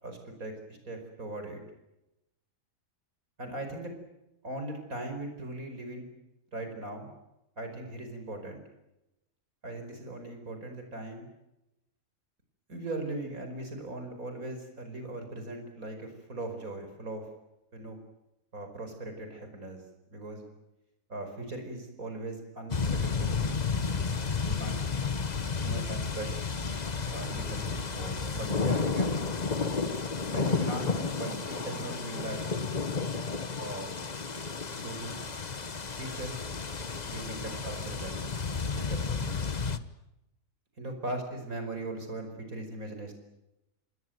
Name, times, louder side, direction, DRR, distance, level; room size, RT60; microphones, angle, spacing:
voice 1, 0.0-1.6 3.4-3.9 4.4-6.1 6.5-7.1 7.6-8.6 9.6-11.3 12.7-17.3 17.7-18.0 18.5-19.8 20.1-20.5 21.1-23.4 24.4-24.8 25.6-26.3 27.1-29.1 30.2-32.4 33.6-34.0 34.8-35.2 35.9-36.4 37.1-38.2 38.8-39.5 40.8-43.1, right 2 dB, 85° right, 5 dB, 5.6 m, -39 dB
sound 1, 22.7-39.8, left 4 dB, 35° left, 1.2 m, -32 dB
28.0 x 20.5 x 9.4 m, 0.93 s
omnidirectional pair, 1.4 m